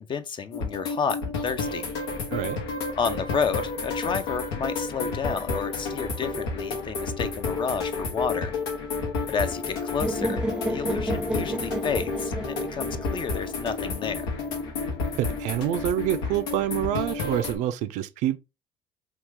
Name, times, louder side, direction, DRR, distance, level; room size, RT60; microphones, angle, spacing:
voice 1, 0.0-1.9 3.0-8.5 9.3-14.3, left 6 dB, 40° left, 0.6 m, -31 dB
sound 1, 0.5-17.6, left 4 dB, 90° left, 1.0 m, -31 dB
sound 2, 10.0-14.0, right 1 dB, 5° right, 0.6 m, -31 dB
voice 2, 15.2-18.4, right 12 dB, 70° right, 0.4 m, -27 dB
2.9 x 2.3 x 3.5 m
supercardioid pair, 75°, 13 cm